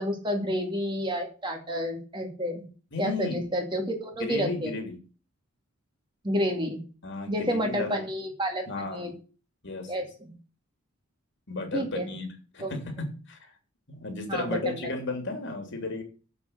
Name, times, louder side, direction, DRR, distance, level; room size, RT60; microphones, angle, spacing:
voice 1, 0.0-2.6 3.0-4.7 6.2-6.8 7.3-9.1 9.9-10.3 11.7-12.1 12.6-12.7 14.3-14.8, equal, 20° right, 3 dB, 2.3 m, -30 dB
voice 2, 2.9-3.5 4.2-5.0 7.0-7.9 8.7-9.1 9.6-9.9 11.5-12.3 12.5-13.5 13.9-16.0, left 3 dB, 55° left, 4 dB, 3.0 m, -34 dB
7.7 x 6.9 x 8.0 m, 0.36 s
head